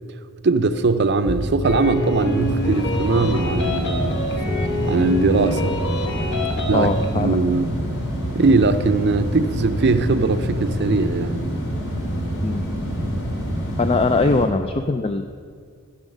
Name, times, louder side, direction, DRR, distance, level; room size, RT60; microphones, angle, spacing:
voice 1, 0.4-4.2 4.9-5.8 6.6-7.7 8.3-11.4, right 3 dB, 50° right, 10 dB, 0.6 m, -20 dB
sound 1, 0.7-14.4, equal, 80° left, 3.0 m, -26 dB
sound 2, 1.6-7.1, left 1 dB, 55° left, 1.2 m, -27 dB
voice 2, 6.7-7.4 12.4-12.6 13.8-15.2, left 3 dB, 25° left, 7 dB, 0.3 m, -21 dB
14.0 x 6.3 x 6.5 m, 2.1 s
head